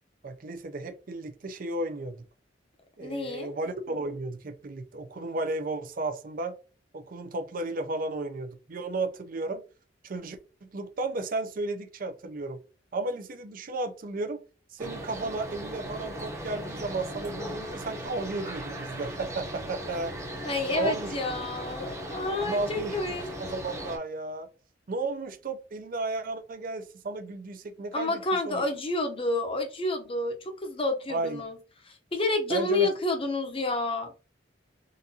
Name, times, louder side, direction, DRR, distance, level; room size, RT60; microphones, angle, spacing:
voice 1, 0.2-2.2 3.0-6.5 6.9-9.6 10.0-12.6 12.9-14.4 14.7-20.1 20.7-21.1 21.8-21.9 22.4-23.0 23.4-24.5 24.9-28.7 31.1-31.4 32.5-32.9, right 2 dB, 50° right, 0.5 m, -33 dB
voice 2, 3.0-3.5 20.4-23.3 27.9-31.6 32.1-34.1, left 2 dB, 30° left, 0.8 m, -29 dB
sound 1, 14.8-24.0, right 1 dB, 15° right, 0.8 m, -38 dB
3.9 x 2.5 x 2.7 m
head